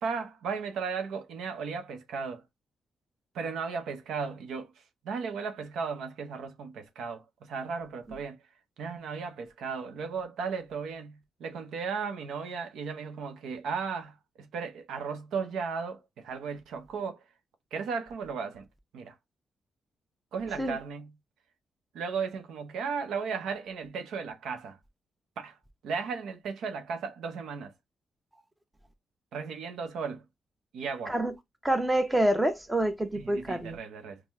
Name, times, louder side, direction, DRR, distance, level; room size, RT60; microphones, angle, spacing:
voice 1, 0.0-2.4 3.3-8.4 8.8-17.2 17.7-18.7 18.9-19.2 20.3-21.1 21.9-24.8 25.4-25.6 25.8-27.7 29.3-30.2 30.7-31.1 33.1-34.2, right 5 dB, 90° right, 0.7 m, -35 dB
voice 2, 31.6-33.8, right 1 dB, 10° right, 0.8 m, -27 dB
4.4 x 2.1 x 3.4 m
cardioid pair, 80°, 0 cm